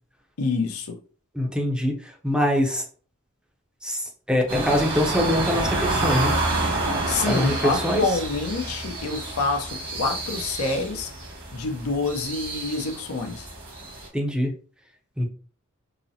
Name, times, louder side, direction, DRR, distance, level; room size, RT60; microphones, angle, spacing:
voice 1, 0.4-1.0 7.1-11.1 11.5-13.5, left 3 dB, 90° left, 0.6 m, -27 dB
voice 2, 1.3-2.8 3.8-6.4 7.3-8.0 14.1-14.5 15.2-15.3, equal, 5° right, 0.5 m, -24 dB
sound 1, 4.5-14.1, right 2 dB, 60° right, 1.4 m, -29 dB
3.8 x 2.0 x 2.7 m
head